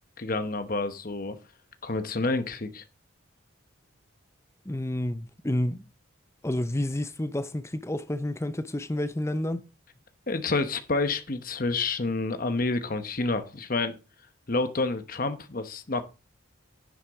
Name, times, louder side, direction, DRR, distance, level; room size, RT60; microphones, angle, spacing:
voice 1, 0.2-1.4 1.8-2.8 10.3-14.0 14.5-16.0, left 3 dB, 40° left, 0.9 m, -28 dB
voice 2, 4.7-5.8 6.4-9.6, left 1 dB, 15° left, 0.5 m, -30 dB
10.0 x 7.9 x 3.5 m
head